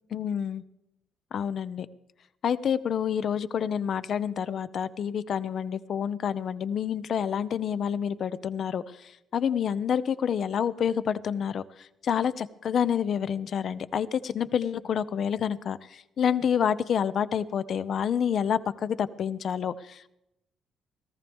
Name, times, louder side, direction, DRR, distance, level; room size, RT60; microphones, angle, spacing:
voice 1, 0.1-0.6 1.3-1.9 2.4-20.1, left 8 dB, 60° left, 14 dB, 0.7 m, -28 dB
18.0 x 14.0 x 3.5 m, 0.87 s
cardioid pair, 90°, 0 cm